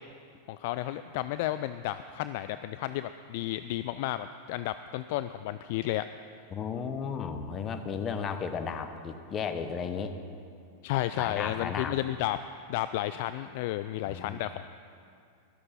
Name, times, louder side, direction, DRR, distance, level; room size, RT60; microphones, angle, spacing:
voice 1, 0.5-6.1 10.8-12.4 12.7-14.7, left 14 dB, 50° left, 12 dB, 0.3 m, -32 dB
voice 2, 6.5-10.2 11.2-12.0 14.1-14.4, left 6 dB, 25° left, 8 dB, 1.0 m, -34 dB
13.0 x 12.5 x 5.6 m, 2.4 s
figure-of-eight pair, 90°, 0 cm